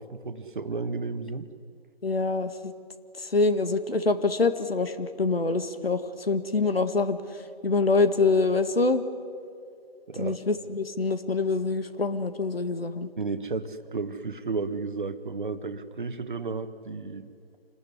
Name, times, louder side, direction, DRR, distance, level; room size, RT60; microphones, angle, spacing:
voice 1, 0.0-1.5 10.1-10.4 13.2-17.3, right 4 dB, 50° right, 10 dB, 1.6 m, -33 dB
voice 2, 2.0-2.7 3.2-9.0 10.2-13.1, left 3 dB, 65° left, 10 dB, 2.0 m, -25 dB
27.0 x 20.0 x 10.0 m, 2.3 s
figure-of-eight pair, 160°, 31 cm